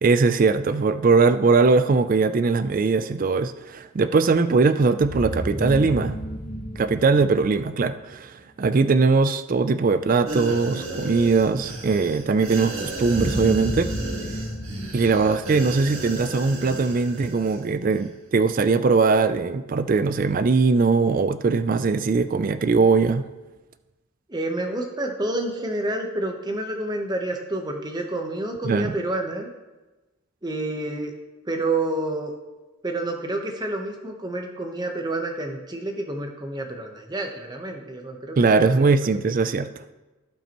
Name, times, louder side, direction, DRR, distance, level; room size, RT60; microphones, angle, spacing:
voice 1, 0.0-6.2 6.8-13.9 14.9-23.3 28.6-28.9 38.4-39.8, right 4 dB, 40° right, 11 dB, 0.3 m, -20 dB
sound 1, 5.0-7.9 12.9-16.1, equal, 85° left, 3.0 m, -32 dB
sound 2, 10.2-17.6 17.9-18.1, right 2 dB, 75° right, 1.7 m, -34 dB
voice 2, 24.3-29.5 30.4-31.1 31.5-32.3 32.8-38.9, right 2 dB, 20° right, 3 dB, 1.0 m, -29 dB
16.5 x 5.6 x 3.0 m, 1.1 s
head